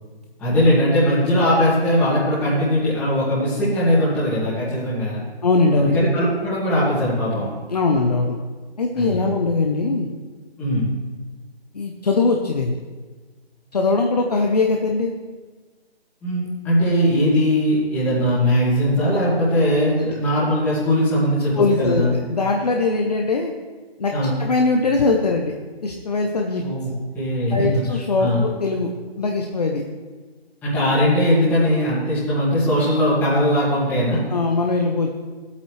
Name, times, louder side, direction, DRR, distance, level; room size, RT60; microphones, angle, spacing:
voice 1, 0.4-5.2 5.7-7.5 9.0-9.3 10.6-10.9 16.2-22.1 24.1-24.4 26.6-26.9 27.1-27.7 28.2-28.4 30.6-34.2, equal, 5° left, -9 dB, 1.9 m, -20 dB
voice 2, 5.4-6.0 7.7-8.4 8.8-10.1 11.7-12.8 13.7-15.1 20.0-20.1 21.6-23.5 24.0-24.1 24.4-25.5 25.8-26.6 27.5-28.9 29.2-29.8 34.3-35.1, left 3 dB, 40° left, 1 dB, 0.7 m, -21 dB
15.5 x 8.3 x 3.2 m, 1.4 s
hypercardioid pair, 165°, 31 cm